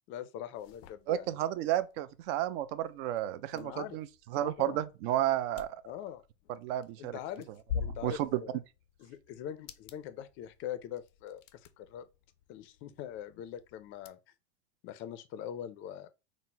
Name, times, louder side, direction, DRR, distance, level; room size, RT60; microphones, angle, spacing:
voice 1, 0.1-1.4 3.5-4.0 4.4-4.8 5.8-6.2 7.0-7.5 7.8-8.6 9.0-12.1 12.5-14.2 14.8-16.1, left 10 dB, 35° left, 0.4 m, -42 dB
sound 1, 0.5-14.1, left 7 dB, 90° left, 0.5 m, -47 dB
voice 2, 1.1-5.8 6.6-7.2 8.0-8.4, right 13 dB, 55° right, 0.5 m, -32 dB
4.1 x 2.1 x 4.4 m
supercardioid pair, 135°, 36 cm